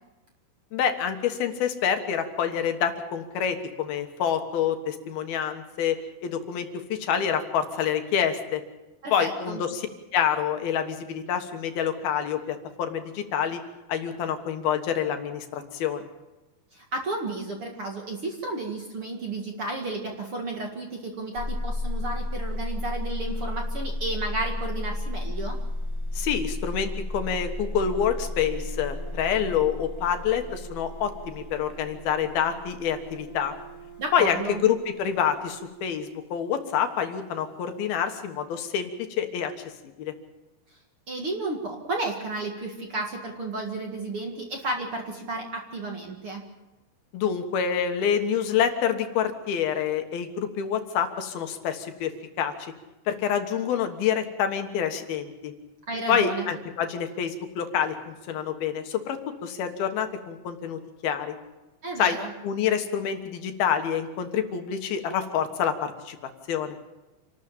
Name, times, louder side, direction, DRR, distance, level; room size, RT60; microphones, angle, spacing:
voice 1, 0.7-8.6 9.1-9.9 10.1-13.6 13.9-16.1 26.1-33.5 34.1-38.9 39.2-39.5 40.0-40.1 47.1-52.1 52.4-52.7 53.1-55.5 56.1-61.4 62.0-62.2 62.4-66.2 66.5-66.8, left 8 dB, 70° left, 7 dB, 3.2 m, -27 dB
voice 2, 9.0-9.6 16.7-25.6 34.0-34.6 41.1-46.4 55.9-56.5 61.8-62.3, right 2 dB, 45° right, 1 dB, 2.2 m, -32 dB
sound 1, 21.4-35.9, left 1 dB, 10° left, 5.4 m, -34 dB
27.0 x 13.0 x 8.8 m, 1.1 s
omnidirectional pair, 4.6 m